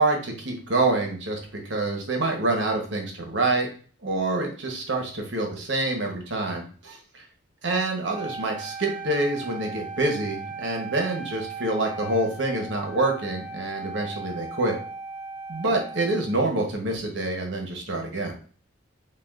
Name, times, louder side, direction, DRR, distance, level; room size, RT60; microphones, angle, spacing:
voice 1, 0.0-3.7 4.0-7.0 7.6-14.8 15.5-18.3, right 2 dB, 65° right, 2 dB, 1.0 m, -26 dB
Wind instrument woodwind instrument, 8.1-16.4, right 4 dB, 5° right, 0.5 m, -38 dB
5.7 x 2.4 x 2.4 m, 0.42 s
head